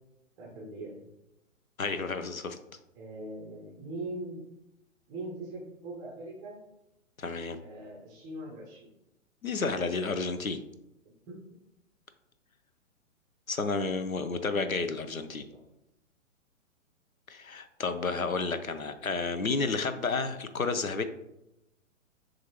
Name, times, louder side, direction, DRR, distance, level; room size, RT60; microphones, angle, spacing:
voice 1, 0.4-1.0 2.9-4.4 5.1-6.6 7.6-8.9 11.3-11.4 15.5-15.6, right 2 dB, 10° right, -3 dB, 0.5 m, -41 dB
voice 2, 1.8-2.6 7.2-7.6 9.4-10.6 13.5-15.5 17.3-21.0, left 4 dB, 90° left, 10 dB, 0.6 m, -31 dB
6.8 x 2.6 x 2.9 m, 0.88 s
figure-of-eight pair, 120°, 40 cm